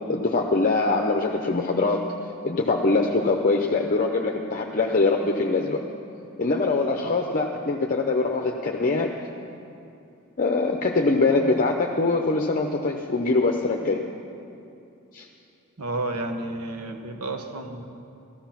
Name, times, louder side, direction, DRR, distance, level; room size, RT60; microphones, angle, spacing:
voice 1, 0.1-2.1 2.4-5.8 6.4-9.1 10.4-14.1 15.1-15.3, left 3 dB, 40° left, 2 dB, 0.7 m, -23 dB
voice 2, 15.8-17.9, right 2 dB, 75° right, 5 dB, 1.4 m, -31 dB
15.0 x 13.5 x 5.9 m, 2.7 s
head